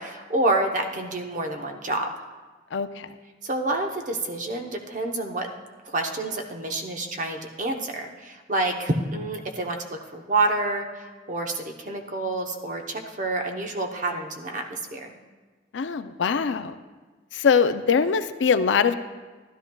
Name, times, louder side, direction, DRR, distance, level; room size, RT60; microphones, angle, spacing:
voice 1, 0.0-2.1 3.4-5.5 5.8-15.1, right 2 dB, 45° right, 3 dB, 0.9 m, -28 dB
voice 2, 2.7-3.1 15.7-16.8 17.3-19.0, left 6 dB, 85° left, 11 dB, 0.4 m, -22 dB
13.0 x 12.0 x 2.3 m, 1.3 s
head